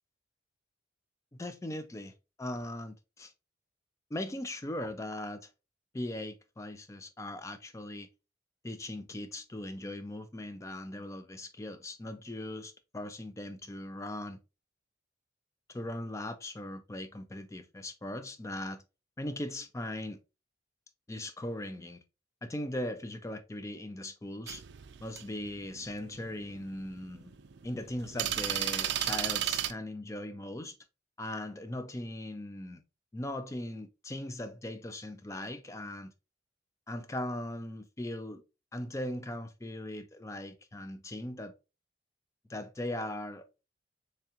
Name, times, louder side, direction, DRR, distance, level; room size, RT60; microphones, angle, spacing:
voice 1, 1.3-2.1 2.4-3.3 4.1-5.5 5.9-8.1 8.6-14.4 15.7-18.8 19.2-20.2 21.1-22.0 22.4-24.6 25.0-27.3 27.6-30.8 31.2-32.8 33.1-36.1 36.9-38.4 38.7-41.5 42.5-43.5, left 1 dB, 15° left, 0.4 m, -39 dB
sound 1, 24.5-29.7, right 11 dB, 65° right, 0.4 m, -33 dB
3.6 x 3.3 x 2.8 m
head